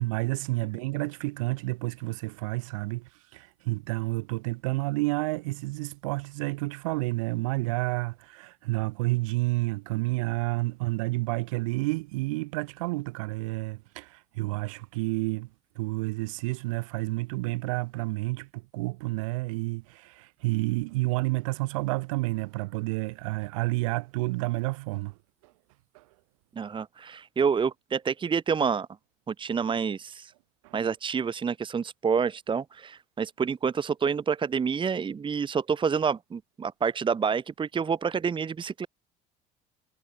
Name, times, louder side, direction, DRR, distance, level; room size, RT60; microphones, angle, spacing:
voice 1, 0.0-15.5 15.7-25.1 25.9-26.0 30.6-30.7, right 23 dB, 90° right, 1.3 m, -30 dB
voice 2, 26.6-28.9 29.3-30.3 30.7-38.9, right 6 dB, 30° right, 1.4 m, -28 dB
supercardioid pair, 85°, 17 cm